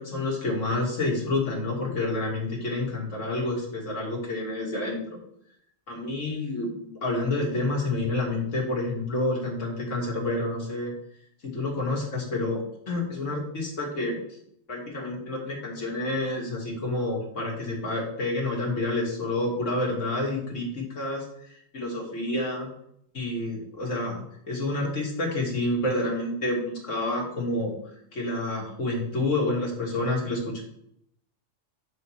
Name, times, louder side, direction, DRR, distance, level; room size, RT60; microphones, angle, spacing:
voice 1, 0.0-5.2 5.9-10.9 11.4-12.6 12.9-14.2 14.7-21.2 21.5-22.7 23.1-27.7 28.1-30.6, left 2 dB, 85° left, -2 dB, 2.2 m, -29 dB
8.9 x 3.1 x 5.6 m, 0.73 s
omnidirectional pair, 1.3 m